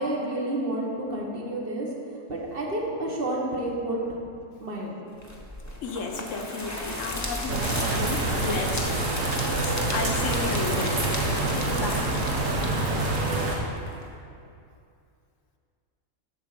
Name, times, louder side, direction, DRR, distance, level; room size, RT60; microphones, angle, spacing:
voice 1, 0.0-1.9 2.3-4.2 4.6-5.0 12.6-13.1, right 1 dB, 45° right, -3 dB, 1.4 m, -30 dB
sound 1, 5.2-14.0, left 1 dB, 15° left, 0.8 m, -35 dB
voice 2, 5.8-8.9 9.6-12.2, left 3 dB, 70° left, 3 dB, 1.1 m, -33 dB
sound 2, 7.5-13.6, right 2 dB, 70° right, 1.6 m, -26 dB
11.0 x 4.3 x 6.6 m, 2.5 s
omnidirectional pair, 1.4 m